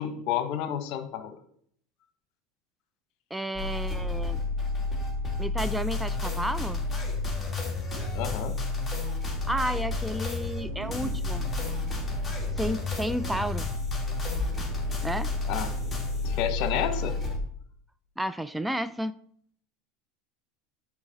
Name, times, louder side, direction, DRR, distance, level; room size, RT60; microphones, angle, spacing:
voice 1, 0.0-1.4 8.1-8.5 15.5-15.7 16.2-17.2, left 10 dB, 60° left, 9 dB, 1.1 m, -30 dB
voice 2, 3.3-4.4 5.4-6.8 9.5-11.5 12.6-13.7 15.0-15.3 18.2-19.1, right 1 dB, 5° right, 13 dB, 0.3 m, -31 dB
sound 1, 3.6-17.4, left 3 dB, 10° left, 2.4 m, -31 dB
sound 2, 10.6-17.1, equal, 80° right, 3.0 m, -40 dB
9.5 x 4.9 x 4.0 m, 0.64 s
supercardioid pair, 105°, 0 cm